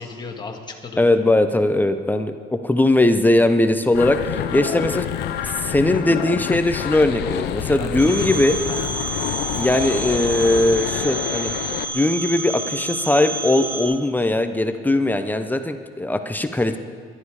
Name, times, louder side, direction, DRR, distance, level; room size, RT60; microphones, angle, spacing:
voice 1, 0.0-1.2 7.6-8.3 8.7-9.0, left 4 dB, 25° left, 1 dB, 2.0 m, -35 dB
voice 2, 1.0-5.1 5.4-8.6 9.5-11.5 11.9-16.8, left 1 dB, 10° left, 8 dB, 0.8 m, -19 dB
sound 1, 3.9-11.8, left 11 dB, 80° left, 0.7 m, -28 dB
Telephone, 8.0-13.8, right 2 dB, 45° right, 3.6 m, -29 dB
21.0 x 12.0 x 4.9 m, 2.1 s
cardioid pair, 110°, 17 cm